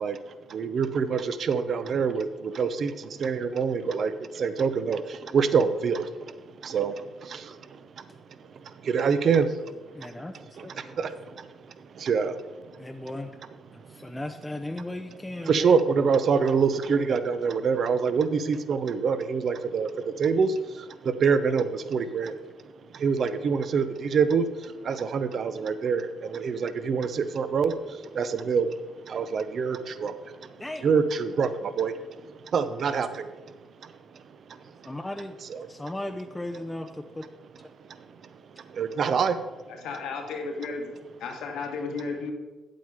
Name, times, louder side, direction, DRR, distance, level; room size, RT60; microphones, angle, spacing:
voice 1, 0.0-8.1 8.5-10.2 10.6-12.8 13.8-14.0 15.5-22.4 22.8-34.9 35.5-35.7 37.9-39.4, right 5 dB, 55° right, 12 dB, 0.7 m, -27 dB
voice 2, 9.9-11.0 12.8-13.4 13.7-15.8 30.6-30.9 34.9-35.4 35.7-37.2, left 1 dB, 10° left, 4 dB, 0.5 m, -36 dB
voice 3, 39.7-40.9 41.2-42.3, left 4 dB, 80° left, 3 dB, 1.5 m, -33 dB
8.7 x 7.8 x 4.9 m, 1.2 s
cardioid pair, 90°, 0 cm